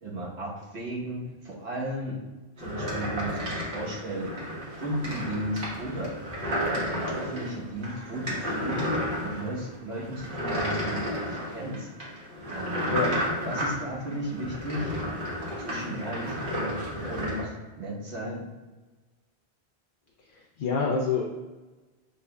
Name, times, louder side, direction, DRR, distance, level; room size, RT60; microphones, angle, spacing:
voice 1, 0.0-2.2 2.6-4.3 4.7-6.2 6.8-8.8 9.2-11.9 12.5-13.0 13.4-15.0 15.6-16.8 17.1-18.5, right 1 dB, 80° right, -5 dB, 1.4 m, -35 dB
sound 1, 2.6-17.4, equal, 50° right, 1.3 m, -32 dB
voice 2, 20.3-21.2, left 5 dB, 60° left, -1 dB, 0.6 m, -27 dB
6.4 x 3.3 x 2.2 m, 1.2 s
omnidirectional pair, 1.1 m